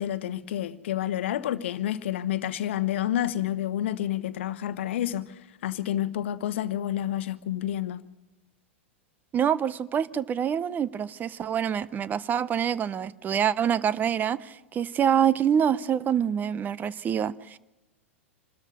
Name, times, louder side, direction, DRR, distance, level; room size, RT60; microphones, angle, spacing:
voice 1, 0.0-8.0, left 12 dB, 65° left, 1.0 m, -29 dB
voice 2, 9.3-17.6, right 8 dB, 25° right, 0.6 m, -26 dB
26.5 x 13.0 x 8.0 m
hypercardioid pair, 100°, 7 cm